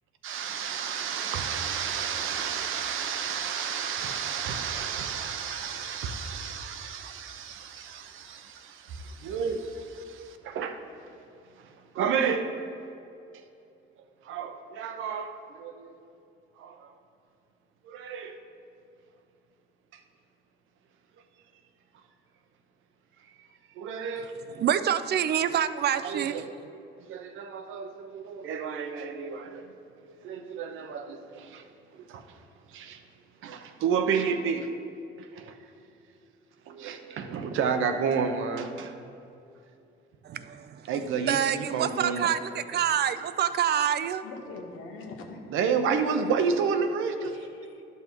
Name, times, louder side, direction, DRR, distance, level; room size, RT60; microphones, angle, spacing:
voice 1, 0.2-10.8 11.9-12.4 14.3-16.0 16.6-16.9 17.8-18.4 23.8-24.3 26.0-26.4 27.1-29.7 30.2-31.6 32.1-32.2 32.7-33.0 33.4-34.7 35.4-35.5 36.7-38.9 40.9-42.3 45.5-47.4, right 6 dB, 85° right, 6 dB, 0.8 m, -31 dB
voice 2, 24.5-26.5 40.2-40.8 41.3-44.2, right 9 dB, 55° right, 13 dB, 0.5 m, -27 dB
voice 3, 44.2-45.4 45.8-45.9 47.2-47.8, left 3 dB, 90° left, 2 dB, 1.2 m, -44 dB
12.0 x 5.7 x 4.5 m, 2.7 s
cardioid pair, 90°, 20 cm